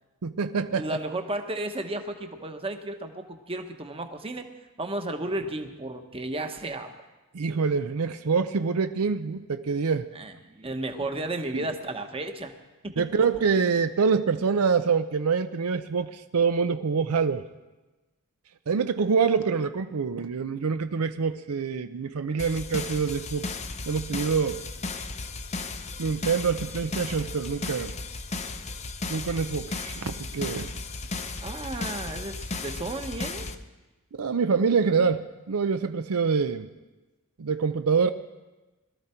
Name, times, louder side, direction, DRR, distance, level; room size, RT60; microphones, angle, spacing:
voice 1, 0.2-1.0 7.3-10.1 11.5-11.7 13.0-17.4 18.7-23.5 23.9-24.6 26.0-27.9 29.1-30.7 34.1-36.7 37.4-38.1, right 5 dB, 70° right, 9 dB, 0.5 m, -26 dB
voice 2, 0.7-4.5 4.8-6.9 10.1-12.5 12.8-13.1 31.4-33.5, right 2 dB, 25° right, 6 dB, 1.1 m, -33 dB
sound 1, 22.4-33.5, left 3 dB, 30° left, 0.7 m, -35 dB
21.5 x 13.0 x 4.4 m, 1.1 s
head